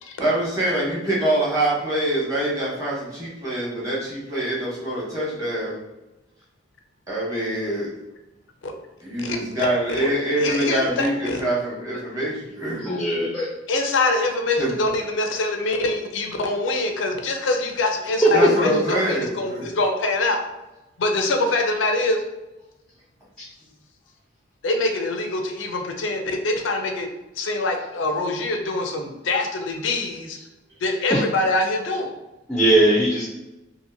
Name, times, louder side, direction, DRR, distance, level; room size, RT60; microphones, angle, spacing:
voice 1, 0.2-5.8 7.1-7.9 9.0-12.8 14.6-14.7 18.3-19.7, right 1 dB, 20° right, -7 dB, 1.0 m, -24 dB
voice 2, 10.4-11.4 13.7-18.5 18.9-20.4 21.0-22.2 24.6-27.1 27.4-30.4 30.8-32.1, left 2 dB, 85° left, 4 dB, 0.5 m, -24 dB
voice 3, 12.8-13.5 18.2-18.6 23.4-23.5 31.1-31.2 32.5-33.3, right 1 dB, 5° left, -4 dB, 0.4 m, -19 dB
2.8 x 2.5 x 2.6 m, 1.0 s
head